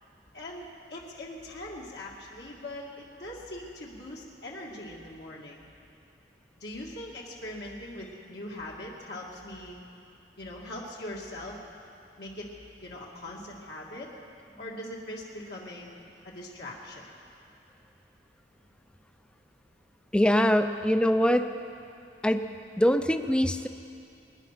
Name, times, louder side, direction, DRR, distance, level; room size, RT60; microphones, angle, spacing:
voice 1, 0.3-5.6 6.6-9.8 10.4-11.6 12.2-12.5 12.8-14.1 14.6-16.0 16.2-17.0, left 1 dB, 65° left, -3 dB, 2.2 m, -41 dB
voice 2, 20.1-21.5 22.2-22.5 22.8-23.7, equal, 5° left, 9 dB, 0.6 m, -23 dB
24.0 x 10.0 x 5.9 m, 2.6 s
head